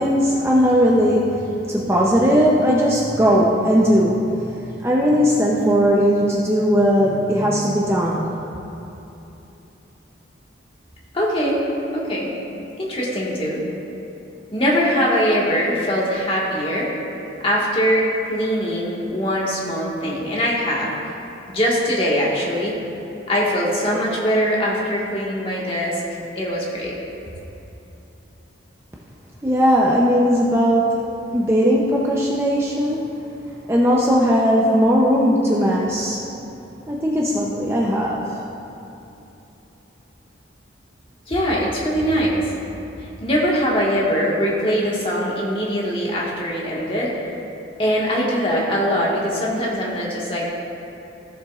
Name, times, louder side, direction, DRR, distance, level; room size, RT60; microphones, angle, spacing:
voice 1, 0.0-8.3 29.4-30.9 31.3-33.1 33.7-36.2 36.9-38.4, equal, 15° right, -4 dB, 0.6 m, -18 dB
voice 2, 11.1-12.4 12.8-13.6 14.5-16.9 17.4-20.9 21.5-22.8 23.3-26.0 26.3-27.0 41.3-42.5 43.0-47.1 47.8-50.5, equal, 30° left, -5 dB, 1.6 m, -22 dB
15.5 x 7.2 x 2.4 m, 3.0 s
head